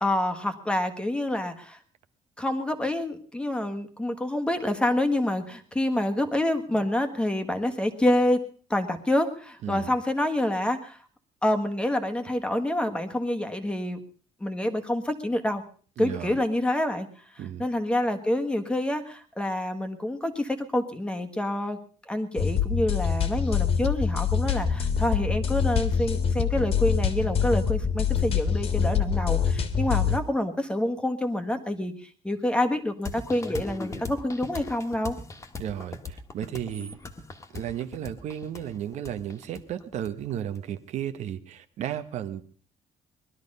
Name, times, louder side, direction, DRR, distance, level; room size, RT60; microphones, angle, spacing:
voice 1, 0.0-1.8 2.4-11.0 11.4-14.0 14.4-15.6 16.0-17.1 17.6-21.8 22.1-31.9 32.2-35.2, left 1 dB, 10° left, 6 dB, 1.4 m, -27 dB
voice 2, 16.0-16.4 17.4-17.7 35.6-37.0 37.5-42.4, right 10 dB, 65° right, 10 dB, 1.1 m, -34 dB
sound 1, 22.4-30.2, left 7 dB, 50° left, 1.7 m, -25 dB
sound 2, 33.0-40.6, left 3 dB, 25° left, 1.6 m, -39 dB
20.0 x 12.5 x 5.4 m, 0.43 s
cardioid pair, 155°, 13 cm